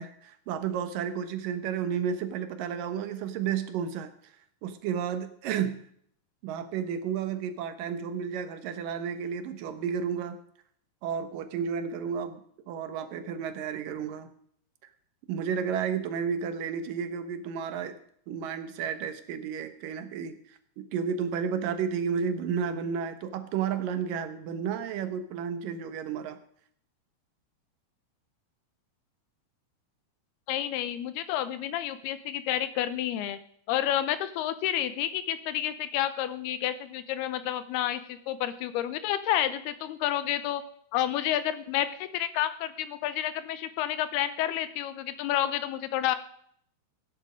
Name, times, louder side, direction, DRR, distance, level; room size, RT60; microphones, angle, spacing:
voice 1, 0.0-4.1 4.6-5.8 6.4-10.4 11.0-14.3 15.3-18.0 18.3-26.4, right 7 dB, 65° right, 9 dB, 2.5 m, -32 dB
voice 2, 30.5-33.4 33.7-40.6 40.9-46.2, left 11 dB, 80° left, 13 dB, 2.8 m, -30 dB
17.5 x 10.5 x 5.1 m, 0.63 s
omnidirectional pair, 4.6 m